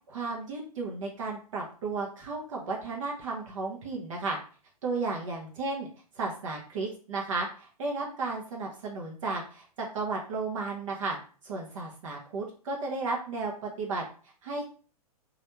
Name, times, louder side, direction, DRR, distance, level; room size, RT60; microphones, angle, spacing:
voice 1, 0.1-4.4 4.8-5.9 6.2-11.2 11.4-14.0 14.4-14.7, right 3 dB, 55° right, -1 dB, 0.8 m, -33 dB
3.1 x 2.5 x 2.9 m, 0.40 s
figure-of-eight pair, 110°, 19 cm